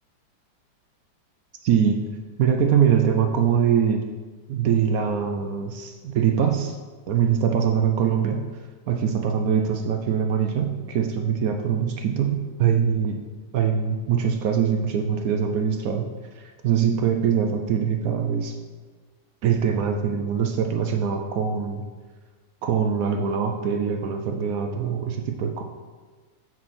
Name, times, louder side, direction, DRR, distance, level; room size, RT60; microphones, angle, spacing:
voice 1, 1.6-2.0 2.4-4.0 4.5-6.7 7.1-8.5 8.9-13.2 13.5-16.1 16.4-18.6 19.4-21.8 22.6-25.6, right 7 dB, 75° right, 5 dB, 0.8 m, -23 dB
7.3 x 6.1 x 4.2 m, 1.4 s
omnidirectional pair, 2.0 m